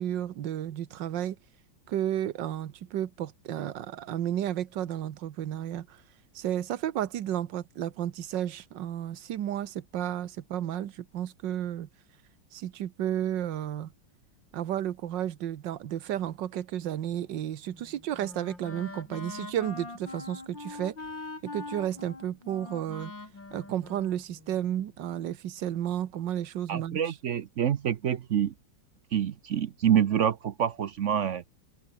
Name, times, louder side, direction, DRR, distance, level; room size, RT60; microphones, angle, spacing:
voice 1, 0.0-1.4 1.9-6.0 6.4-11.9 12.5-13.9 14.5-21.1 21.4-23.1 23.5-27.1, right 11 dB, 75° right, 1.7 m, -32 dB
Wind instrument woodwind instrument, 17.7-24.8, left 3 dB, 80° left, 6.4 m, -43 dB
voice 2, 26.7-28.5 29.1-31.4, right 9 dB, 60° right, 0.8 m, -27 dB
open air
omnidirectional pair, 2.0 m